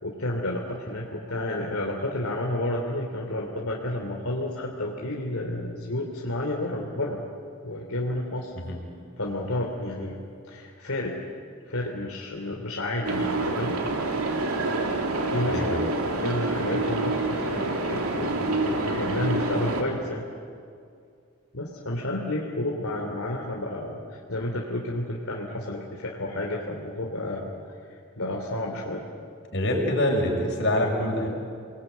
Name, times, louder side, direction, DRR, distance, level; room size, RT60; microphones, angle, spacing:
voice 1, 0.0-7.2 7.6-8.5 9.2-10.2 10.4-11.2 11.7-13.7 15.3-15.7 16.2-20.2 21.5-27.5 27.8-29.1, left 1 dB, 75° left, -1 dB, 3.1 m, -31 dB
sound 1, 13.0-19.8, right 2 dB, 90° right, 2.9 m, -27 dB
voice 2, 15.5-15.8 29.5-31.3, left 1 dB, 55° left, 0 dB, 6.4 m, -25 dB
29.0 x 21.0 x 9.4 m, 2.3 s
head